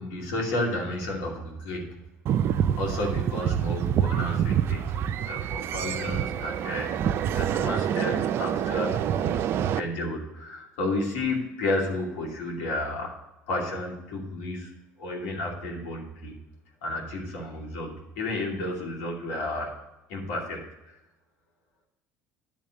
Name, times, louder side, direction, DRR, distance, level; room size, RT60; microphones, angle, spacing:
voice 1, 0.0-2.0 2.8-4.8 5.3-9.4 9.8-13.1 13.5-14.7 15.0-16.3 16.8-19.7 20.1-20.6 20.9-21.0, left 2 dB, 85° left, -1 dB, 2.4 m, -32 dB
sound 1, 2.3-9.8, right 9 dB, 50° right, 0.4 m, -27 dB
10.5 x 3.6 x 6.4 m, 0.98 s
supercardioid pair, 105°, 5 cm